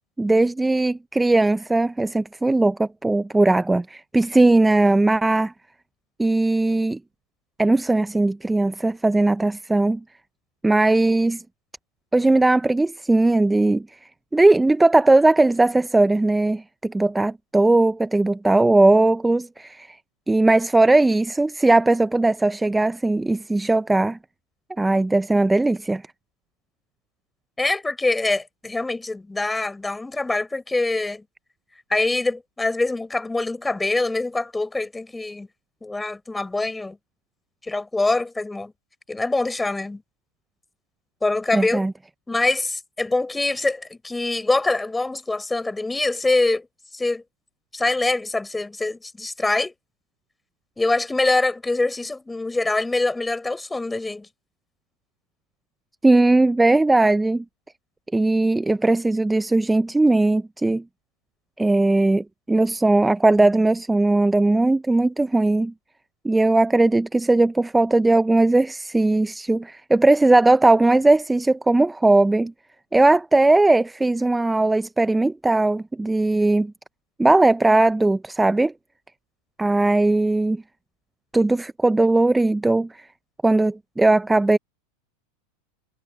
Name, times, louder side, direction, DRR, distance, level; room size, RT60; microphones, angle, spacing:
voice 1, 0.2-5.5 6.2-7.0 7.6-10.0 10.6-11.4 12.1-13.9 14.3-20.0 20.3-24.2 24.8-26.0 41.5-41.9 56.0-57.4 58.1-60.8 61.6-65.7 66.2-72.5 72.9-76.7 77.2-78.7 79.6-80.6 81.3-82.9 83.4-84.6, right 2 dB, 5° right, 0.5 m, -18 dB
voice 2, 27.6-31.2 31.9-35.5 35.8-37.0 37.6-38.7 39.1-40.0 41.2-41.9 42.3-46.7 46.9-47.2 47.7-49.7 50.8-54.3, left 2 dB, 10° left, 6.0 m, -24 dB
supercardioid pair, 125°, 0 cm